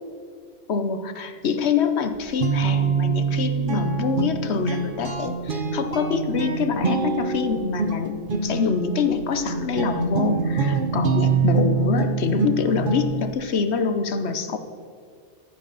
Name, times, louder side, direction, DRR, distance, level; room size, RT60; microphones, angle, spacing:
voice 1, 0.7-8.2 8.4-14.6, left 5 dB, 70° left, 9 dB, 1.1 m, -25 dB
Guitar, 2.1-13.3, right 5 dB, 50° right, 1.1 m, -25 dB
14.0 x 11.0 x 4.1 m, 2.1 s
omnidirectional pair, 1.2 m